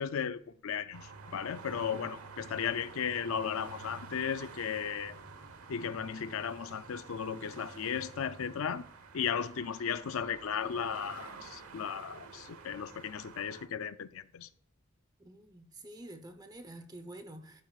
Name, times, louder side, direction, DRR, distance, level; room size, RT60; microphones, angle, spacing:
voice 1, 0.0-5.2 5.7-8.8 9.1-14.5, left 7 dB, 70° left, 0.5 m, -35 dB
sound 1, 0.9-13.7, right 4 dB, 90° right, 1.1 m, -49 dB
voice 2, 15.2-17.6, right 1 dB, 20° right, 0.8 m, -48 dB
12.0 x 9.1 x 2.4 m
head